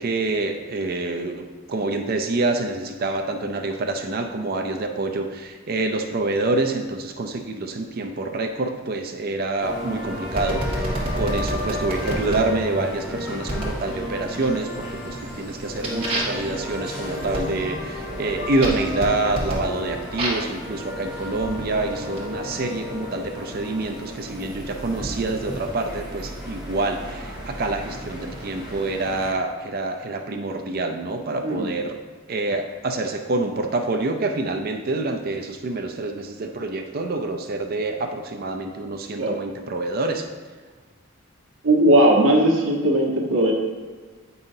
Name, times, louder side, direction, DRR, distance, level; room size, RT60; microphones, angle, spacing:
voice 1, 0.0-32.0 32.3-40.3, right 2 dB, 45° right, 5 dB, 0.5 m, -27 dB
sound 1, 9.6-29.3, left 1 dB, 5° right, 1.8 m, -33 dB
sound 2, 10.4-12.4 13.5-13.8 14.3-14.8 15.2-20.5 21.3-22.6, right 1 dB, 30° right, 1.6 m, -30 dB
voice 2, 41.6-43.5, right 1 dB, 75° right, -2 dB, 1.3 m, -18 dB
8.7 x 5.5 x 2.7 m, 1.4 s
head